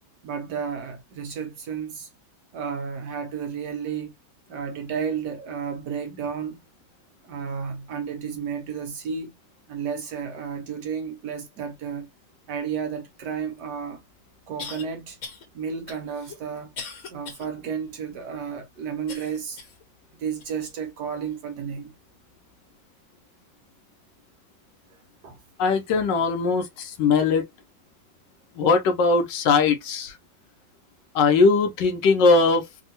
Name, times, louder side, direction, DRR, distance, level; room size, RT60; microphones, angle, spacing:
voice 1, 0.2-2.1 2.5-4.1 4.5-6.6 7.2-9.3 9.7-12.1 12.5-14.0 14.5-15.2 15.5-16.7 17.1-19.6 20.2-21.9 25.2-25.4, right 7 dB, 65° right, 1.2 m, -32 dB
sound 1, 13.6-13.7 14.6-14.8 15.2-15.5 15.9-17.5 17.9-18.0 19.1-19.8 20.4-20.5 21.3-21.4, left 5 dB, 55° left, 1.2 m, -39 dB
voice 2, 25.6-27.4 28.6-30.1 31.1-32.7, left 4 dB, 70° left, 1.2 m, -20 dB
3.5 x 2.2 x 2.7 m
omnidirectional pair, 2.1 m